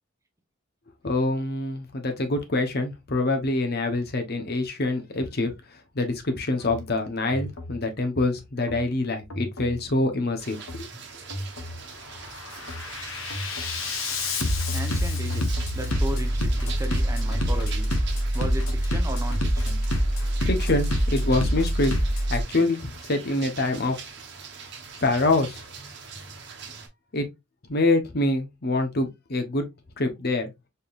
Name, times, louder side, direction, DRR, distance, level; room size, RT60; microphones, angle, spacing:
voice 1, 1.0-10.8 20.2-21.9 22.3-24.0 25.0-25.6 27.1-27.3 27.7-29.6 30.0-30.5, left 2 dB, 50° left, 0.9 m, -25 dB
Bass drum, 6.6-6.8 7.3-7.8 8.6-8.8 9.3-9.8 10.6-10.8 11.3-11.8 12.2-22.4, equal, 85° left, 1.0 m, -26 dB
sound 1, 10.4-26.9, right 4 dB, 60° right, 1.0 m, -42 dB
voice 2, 14.7-15.5 15.7-17.9 18.3-19.8, right 1 dB, 15° right, 0.7 m, -35 dB
4.4 x 3.5 x 2.4 m
head